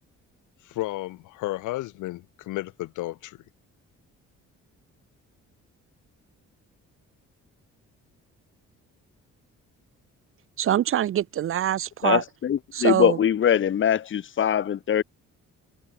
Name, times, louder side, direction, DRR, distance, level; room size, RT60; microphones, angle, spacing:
voice 1, 0.6-3.4, left 18 dB, 85° left, 0.7 m, -32 dB
voice 2, 10.6-12.2 12.7-13.2, right 11 dB, 45° right, 0.5 m, -24 dB
voice 3, 12.0-15.0, left 9 dB, 40° left, 0.7 m, -22 dB
cardioid pair, 90°, 30 cm